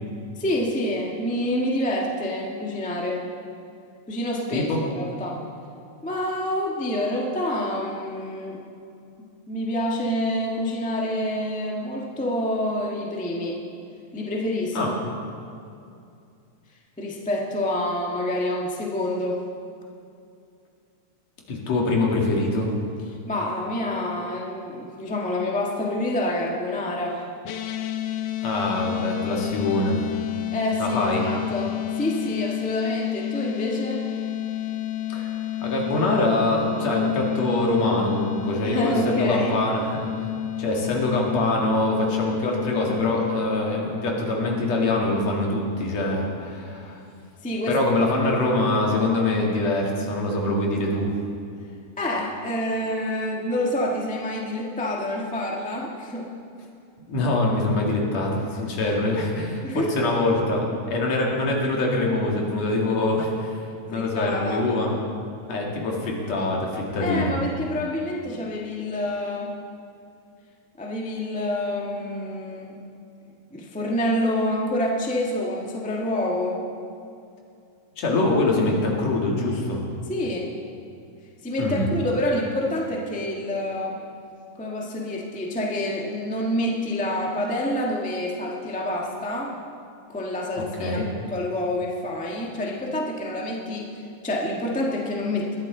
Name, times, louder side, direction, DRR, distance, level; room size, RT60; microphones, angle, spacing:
voice 1, 0.4-3.2 4.1-4.7 4.9-5.4 6.0-8.6 9.5-13.6 14.1-14.8 17.0-19.4 23.3-27.2 30.5-34.0 38.6-39.6 47.4-47.8 48.2-48.3 52.0-56.3 59.6-60.1 63.9-64.6 67.0-69.5 70.8-72.8 73.5-76.6 80.1-80.5 81.4-84.0 84.6-89.6 90.1-93.9 94.2-95.6, left 1 dB, 5° left, -2 dB, 0.7 m, -27 dB
voice 2, 4.5-4.8 14.7-14.9 21.5-22.7 28.4-30.0 30.8-31.2 35.1-35.3 35.6-40.1 40.6-47.0 47.7-51.1 57.1-63.6 63.9-64.9 65.5-67.3 78.0-79.8 81.6-81.9 90.8-91.0, left 2 dB, 65° left, -1 dB, 3.1 m, -24 dB
sound 1, 27.4-43.8, left 13 dB, 85° left, 1.3 m, -30 dB
20.5 x 13.0 x 3.9 m, 2.5 s
omnidirectional pair, 3.4 m